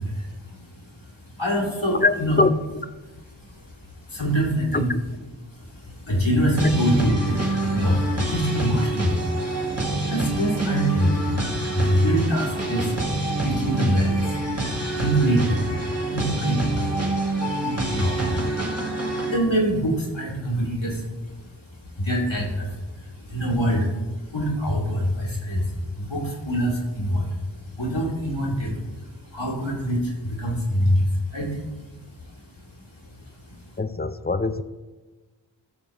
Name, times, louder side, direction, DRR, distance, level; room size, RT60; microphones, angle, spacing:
voice 1, 0.0-2.4 3.4-4.9 5.5-32.5 32.8-33.1 33.4-33.8, equal, 85° left, -3 dB, 2.3 m, -26 dB
voice 2, 2.0-2.5 4.7-5.0 33.8-34.6, left 3 dB, 25° left, 11 dB, 0.4 m, -22 dB
sound 1, 6.6-19.4, right 2 dB, 35° right, 1.5 m, -26 dB
13.0 x 6.4 x 3.0 m, 1.2 s
wide cardioid pair, 65°, 45 cm